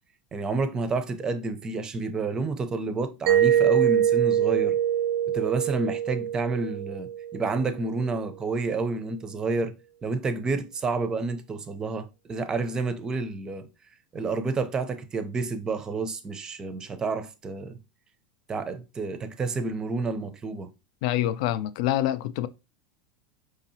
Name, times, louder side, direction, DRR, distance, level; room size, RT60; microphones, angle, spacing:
voice 1, 0.3-4.8 5.3-9.7 10.0-13.7 14.1-17.8 18.5-20.7, right 3 dB, 20° right, 0.5 m, -29 dB
Mallet percussion, 3.3-7.9, right 10 dB, 70° right, 0.5 m, -24 dB
voice 2, 21.0-22.5, left 13 dB, 65° left, 0.3 m, -26 dB
4.8 x 2.7 x 2.7 m
supercardioid pair, 145°, 4 cm